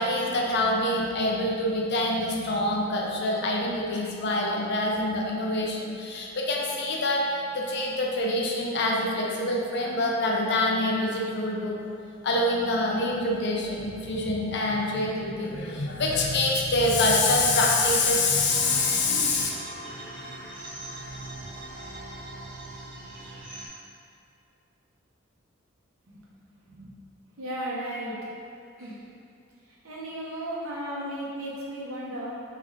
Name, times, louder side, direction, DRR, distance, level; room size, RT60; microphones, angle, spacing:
voice 1, 0.0-11.8 12.2-19.5, left 2 dB, 55° left, -1 dB, 0.5 m, -25 dB
sound 1, 18.5-23.7, right 1 dB, 45° right, 0.7 m, -40 dB
voice 2, 26.1-26.4 26.7-26.9 27.4-28.3 28.8-29.1 29.7-32.4, right 1 dB, 90° right, -6 dB, 0.9 m, -35 dB
3.5 x 3.3 x 3.2 m, 2.5 s
head